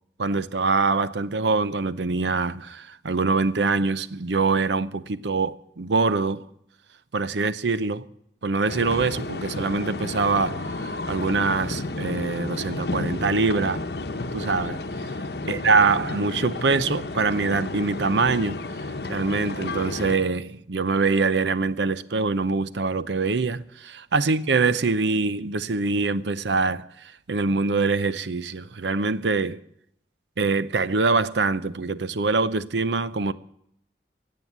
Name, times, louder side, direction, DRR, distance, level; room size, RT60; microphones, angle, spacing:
voice 1, 0.2-6.4 7.1-8.0 8.4-13.8 14.3-14.8 15.5-18.6 19.1-26.9 27.3-29.6 30.4-33.3, right 4 dB, 80° right, 0.7 m, -24 dB
sound 1, 8.7-20.2, left 2 dB, 65° left, 0.9 m, -32 dB
17.0 x 7.7 x 9.5 m
head